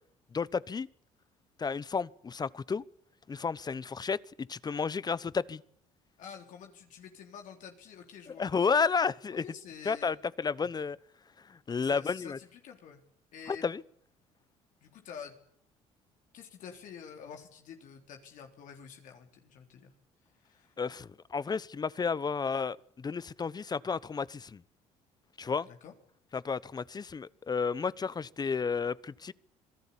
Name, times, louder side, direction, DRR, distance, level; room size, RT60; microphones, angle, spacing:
voice 1, 0.3-0.9 1.6-2.8 3.3-5.6 8.4-9.4 9.8-11.0 11.5-12.4 13.5-13.8 20.8-24.6 25.4-25.7 26.3-29.3, left 5 dB, 30° left, 0.9 m, -32 dB
voice 2, 6.2-8.5 9.4-10.2 11.7-13.0 13.3-13.7 14.8-15.3 16.3-19.9 20.4-20.7 25.6-25.9, left 7 dB, 65° left, 3.6 m, -48 dB
26.5 x 17.5 x 8.5 m
supercardioid pair, 80°, 14 cm